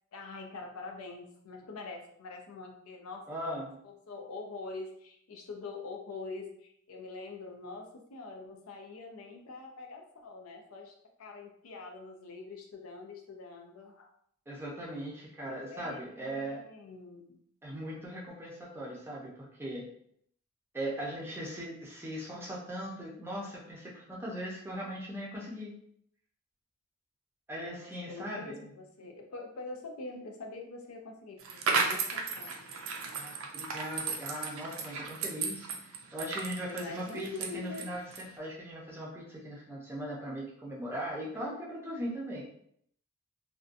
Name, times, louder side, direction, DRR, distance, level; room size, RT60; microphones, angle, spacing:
voice 1, 0.1-3.3 3.8-10.9 11.2-14.1 15.7-17.4 27.8-32.7 36.6-37.9, left 3 dB, 90° left, 3 dB, 0.5 m, -44 dB
voice 2, 3.3-3.8 14.5-16.6 17.6-19.9 20.7-25.8 27.5-28.7 33.2-35.7 36.1-37.3 37.5-42.4, equal, 10° right, -4 dB, 0.5 m, -39 dB
sound 1, 31.4-38.4, right 4 dB, 75° right, 0.4 m, -35 dB
2.6 x 2.2 x 2.5 m, 0.67 s
head